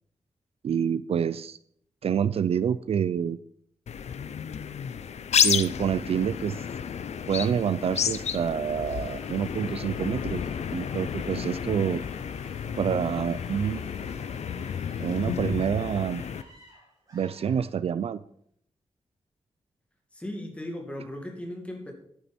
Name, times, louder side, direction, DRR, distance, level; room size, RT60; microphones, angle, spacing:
voice 1, 0.6-1.6 2.0-3.4 5.4-6.6 7.3-10.4 10.7-12.0 12.8-13.8 15.0-16.2 17.1-18.2, right 8 dB, 65° right, 16 dB, 0.4 m, -27 dB
sound 1, 3.9-16.4, left 7 dB, 85° left, 0.6 m, -31 dB
sound 2, 8.6-18.1, right 1 dB, 35° right, 4.5 m, -54 dB
voice 2, 20.1-21.9, left 1 dB, 10° left, 2 dB, 2.2 m, -37 dB
11.5 x 9.8 x 4.3 m, 0.67 s
wide cardioid pair, 170°, 11 cm